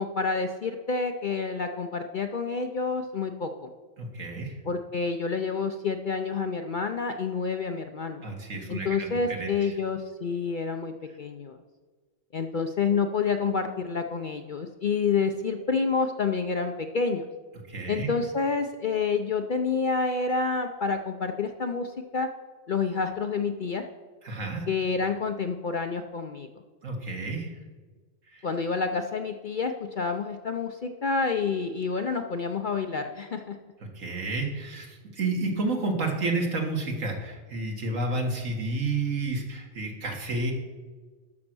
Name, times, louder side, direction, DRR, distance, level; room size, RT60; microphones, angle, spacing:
voice 1, 0.0-3.7 4.7-8.2 8.7-11.6 12.3-17.3 17.9-22.3 22.7-23.8 24.7-26.5 28.4-33.6, left 4 dB, 55° left, 6 dB, 0.6 m, -28 dB
voice 2, 4.0-4.6 8.2-9.8 17.7-18.1 24.2-24.7 26.8-27.5 28.3-28.5 33.9-40.5, right 3 dB, 75° right, 2 dB, 2.1 m, -30 dB
12.0 x 6.5 x 6.1 m, 1.4 s
omnidirectional pair, 1.4 m